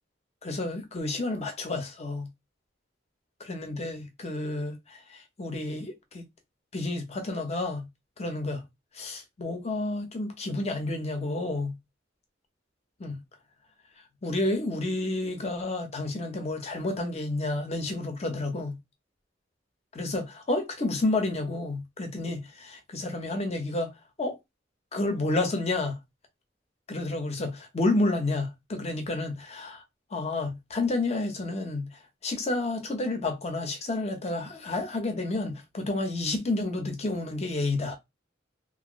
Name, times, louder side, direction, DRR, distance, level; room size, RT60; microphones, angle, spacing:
voice 1, 0.4-2.3 3.4-5.0 5.4-6.2 6.7-7.9 8.2-8.6 9.0-11.7 13.0-13.2 14.2-18.8 19.9-23.9 24.2-24.4 24.9-26.0 26.9-29.8 30.1-31.9 32.2-38.0, left 2 dB, 35° left, 0.8 m, -30 dB
2.9 x 2.5 x 3.0 m
head